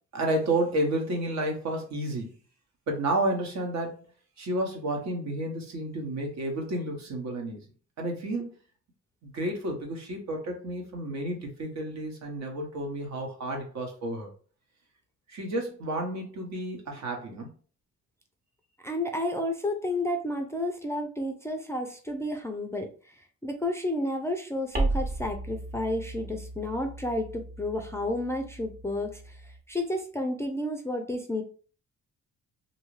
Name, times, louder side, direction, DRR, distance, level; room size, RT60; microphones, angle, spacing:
voice 1, 0.1-2.3 2.9-4.0 4.4-7.6 8.0-8.5 9.2-14.3 15.3-17.5, right 1 dB, 65° right, 2 dB, 1.1 m, -31 dB
voice 2, 18.8-23.1 23.4-31.4, left 1 dB, 10° left, 4 dB, 0.4 m, -31 dB
sound 1, 24.7-29.6, right 2 dB, 35° right, 0.9 m, -35 dB
2.7 x 2.3 x 3.1 m, 0.40 s
cardioid pair, 90°, 30 cm